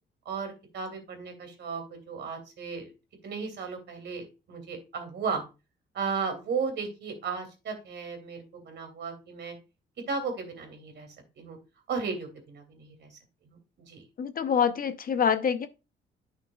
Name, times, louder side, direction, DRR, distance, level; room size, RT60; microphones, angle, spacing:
voice 1, 0.2-2.9 3.2-5.4 5.9-9.5 10.1-11.1 11.4-11.6 11.9-13.2 13.4-14.0, right 5 dB, 60° right, 2.8 m, -35 dB
voice 2, 14.2-15.7, left 7 dB, 45° left, 0.8 m, -26 dB
10.5 x 5.8 x 2.3 m
cardioid pair, 90°, 20 cm